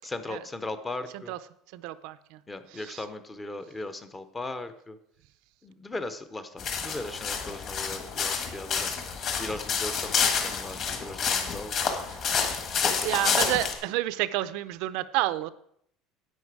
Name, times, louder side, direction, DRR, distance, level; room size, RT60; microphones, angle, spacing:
voice 1, 0.0-1.3 2.5-5.0 5.6-8.9 9.4-11.8 12.8-13.7, left 2 dB, 10° left, 11 dB, 0.6 m, -38 dB
voice 2, 1.7-2.4 2.8-3.0 13.0-15.5, right 16 dB, 60° right, 14 dB, 0.4 m, -29 dB
sound 1, 6.6-13.7, left 6 dB, 35° left, 1.5 m, -29 dB
10.5 x 8.8 x 4.7 m, 0.70 s
cardioid pair, 180°, 0 cm